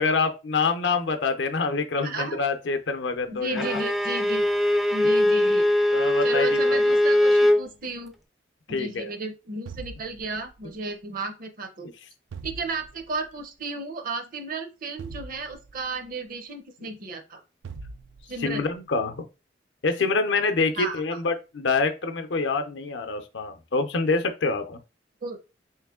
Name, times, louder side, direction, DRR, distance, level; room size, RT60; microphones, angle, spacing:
voice 1, 0.0-3.8 5.9-6.8 8.7-9.1 18.4-19.2 19.8-24.8, left 4 dB, 70° left, 0.6 m, -26 dB
voice 2, 2.0-2.4 3.3-4.5 4.9-5.7 6.2-8.1 8.7-11.9 12.4-17.4 18.3-18.7 20.8-21.2 25.2-25.4, right 3 dB, 50° right, 0.6 m, -33 dB
Bowed string instrument, 3.6-7.7, left 1 dB, ahead, 0.3 m, -21 dB
sound 1, 9.7-10.8 12.3-13.3 15.0-16.1 17.6-18.6, right 4 dB, 85° right, 0.4 m, -42 dB
3.1 x 3.0 x 3.6 m
head